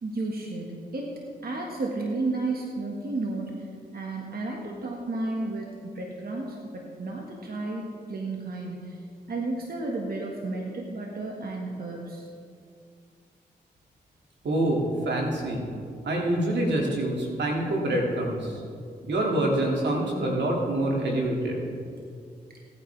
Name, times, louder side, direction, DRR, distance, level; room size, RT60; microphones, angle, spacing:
voice 1, 0.0-7.8 8.1-9.0 9.3-12.3, right 2 dB, 60° right, -1 dB, 1.7 m, -32 dB
voice 2, 14.4-15.7 16.0-18.5 19.0-21.6, right 1 dB, 80° right, -1 dB, 2.3 m, -26 dB
17.0 x 9.6 x 3.4 m, 2.3 s
supercardioid pair, 45°, 18 cm